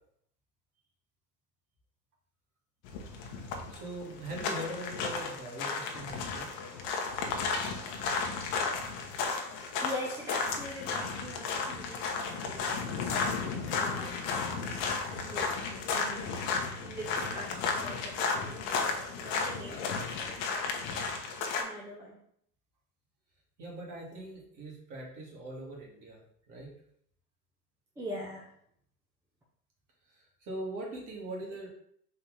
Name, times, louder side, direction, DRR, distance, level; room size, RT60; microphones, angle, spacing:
sound 1, 2.8-21.6, left 5 dB, 50° left, 0.9 m, -34 dB
voice 1, 3.7-6.5 23.6-26.7 30.1-31.7, right 1 dB, 40° right, -2 dB, 1.9 m, -41 dB
voice 2, 9.8-12.6 13.7-14.1 15.1-15.5 15.9-16.3 16.8-20.7 21.6-22.2 28.0-28.5, equal, 5° right, -3 dB, 0.6 m, -42 dB
4.3 x 2.9 x 3.7 m, 0.67 s
hypercardioid pair, 100°, 48 cm